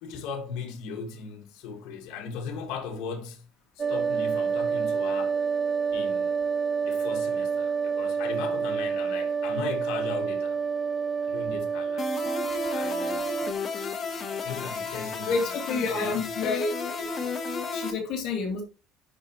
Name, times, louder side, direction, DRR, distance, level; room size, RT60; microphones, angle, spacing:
voice 1, 0.0-3.4 3.8-5.4 5.9-6.4 6.8-10.6 11.2-12.1 12.7-13.5 14.4-15.6 15.9-16.3, left 5 dB, 70° left, 1.7 m, -37 dB
sound 1, 3.8-13.5, right 6 dB, 20° right, 0.3 m, -28 dB
sound 2, 12.0-17.9, left 4 dB, 30° left, 1.2 m, -33 dB
voice 2, 15.3-17.1 17.7-18.6, left 4 dB, 55° left, 2.2 m, -29 dB
11.0 x 4.8 x 3.1 m
cardioid pair, 155°, 0 cm